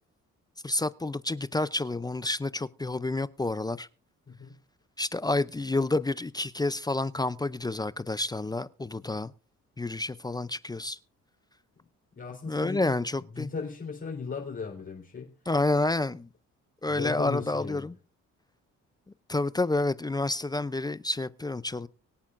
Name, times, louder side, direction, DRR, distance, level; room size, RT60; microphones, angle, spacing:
voice 1, 0.6-3.9 5.0-9.3 9.8-11.0 12.5-13.5 15.5-16.3 16.8-17.9 19.3-21.9, left 2 dB, 15° left, 0.5 m, -29 dB
voice 2, 12.1-13.0 13.3-15.3 16.9-17.9, left 5 dB, 40° left, 3.9 m, -37 dB
24.5 x 8.4 x 2.5 m
cardioid pair, 90°, 30 cm